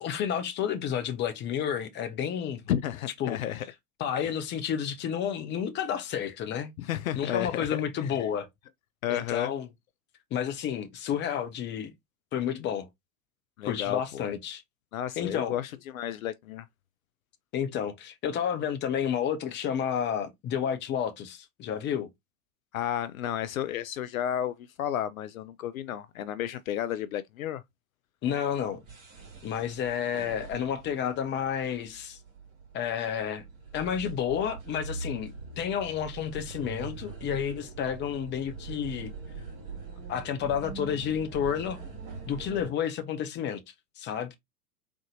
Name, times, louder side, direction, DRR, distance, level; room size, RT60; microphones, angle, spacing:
voice 1, 0.0-2.6 3.2-3.4 4.0-6.7 7.2-8.5 9.1-9.7 10.3-11.9 12.3-12.9 13.6-14.6 15.2-15.6 17.5-22.1 28.2-28.8 29.4-32.2 32.7-33.4 33.7-39.1 40.1-41.8 42.3-43.6 44.0-44.3, left 8 dB, 25° left, 0.8 m, -31 dB
voice 2, 2.7-3.7 4.2-4.3 6.8-7.7 8.0-8.1 9.0-9.5 13.6-14.2 14.9-16.7 22.7-27.6, left 11 dB, 65° left, 0.5 m, -32 dB
sound 1, 28.5-42.7, right 4 dB, 30° right, 2.1 m, -43 dB
3.7 x 3.5 x 2.6 m
figure-of-eight pair, 95°, 45 cm